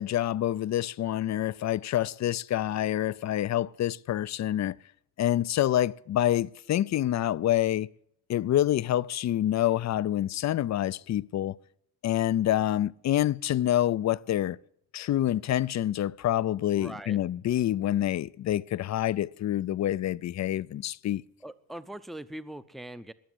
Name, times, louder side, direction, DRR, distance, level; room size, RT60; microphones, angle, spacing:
voice 1, 0.0-4.8 5.2-7.9 8.3-11.6 12.0-14.6 14.9-21.2, left 12 dB, 40° left, 0.5 m, -27 dB
voice 2, 16.7-17.2 21.4-23.1, right 1 dB, ahead, 0.7 m, -41 dB
20.5 x 7.2 x 7.8 m
supercardioid pair, 65°, 42 cm